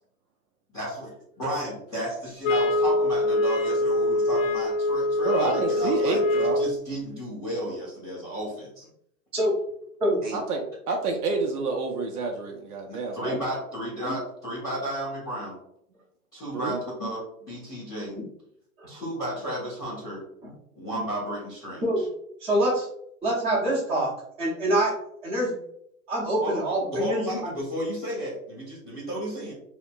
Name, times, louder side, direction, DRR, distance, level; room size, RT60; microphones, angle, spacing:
voice 1, 0.7-8.8 10.2-10.4 12.9-15.6 16.3-18.2 18.9-20.2 20.8-22.1 26.4-26.6 26.9-29.5, right 1 dB, 10° left, -11 dB, 0.3 m, -33 dB
sound 1, 2.4-6.8, left 1 dB, 60° left, 0.5 m, -24 dB
voice 2, 5.2-6.6 10.3-13.2 16.5-16.8, right 3 dB, 85° right, 1 dB, 0.6 m, -28 dB
voice 3, 22.4-22.9 23.2-24.9 25.2-25.6 26.1-27.5, right 1 dB, 15° right, -6 dB, 0.8 m, -25 dB
2.8 x 2.2 x 2.5 m, 0.71 s
hypercardioid pair, 135°, 44 cm